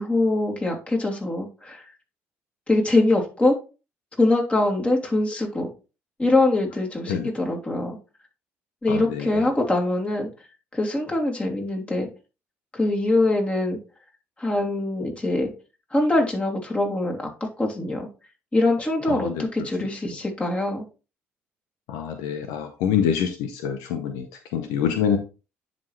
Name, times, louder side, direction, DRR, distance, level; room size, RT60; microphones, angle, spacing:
voice 1, 0.0-1.8 2.7-3.5 4.2-5.7 6.2-8.0 8.8-10.3 10.7-12.1 12.7-13.8 14.4-15.5 15.9-17.3 17.6-18.1 18.5-20.9, left 2 dB, 20° left, 0 dB, 2.8 m, -23 dB
voice 2, 8.9-9.3 19.1-19.3 21.9-24.2 24.5-25.2, left 8 dB, 75° left, 7 dB, 0.8 m, -25 dB
10.5 x 4.2 x 3.2 m, 0.31 s
hypercardioid pair, 55°, 6 cm